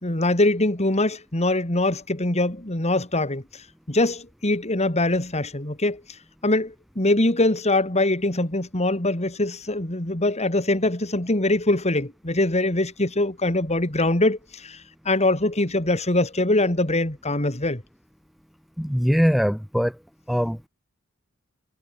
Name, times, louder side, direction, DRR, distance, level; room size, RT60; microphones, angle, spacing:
voice 1, 0.0-6.0 6.4-17.8, left 2 dB, 30° left, 3.0 m, -23 dB
voice 2, 18.8-20.0 20.3-20.7, equal, ahead, 1.9 m, -22 dB
head